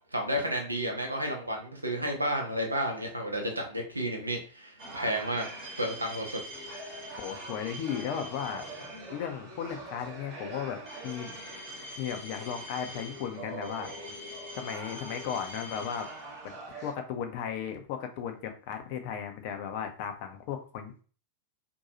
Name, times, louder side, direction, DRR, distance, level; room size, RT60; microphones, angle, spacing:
voice 1, 0.1-5.4 5.8-6.4, equal, 85° right, 2 dB, 0.7 m, -31 dB
sound 1, 4.8-16.9, right 1 dB, 40° right, 1.0 m, -42 dB
voice 2, 7.2-11.4 12.0-13.9 14.6-16.1 16.4-16.6 16.8-21.0, left 8 dB, 45° left, 5 dB, 0.5 m, -36 dB
2.6 x 2.3 x 2.8 m, 0.39 s
figure-of-eight pair, 90°, 0 cm